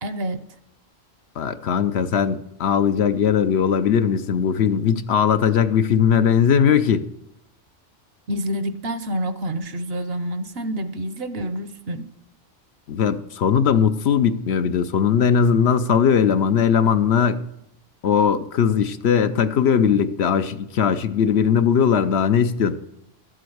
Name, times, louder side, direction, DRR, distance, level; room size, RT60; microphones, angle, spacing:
voice 1, 0.0-0.5 8.3-12.1, equal, 60° right, 1.0 m, -28 dB
voice 2, 1.4-7.1 12.9-17.4 18.0-22.8, left 7 dB, 65° left, 0.9 m, -19 dB
12.5 x 7.7 x 7.8 m
omnidirectional pair, 1.2 m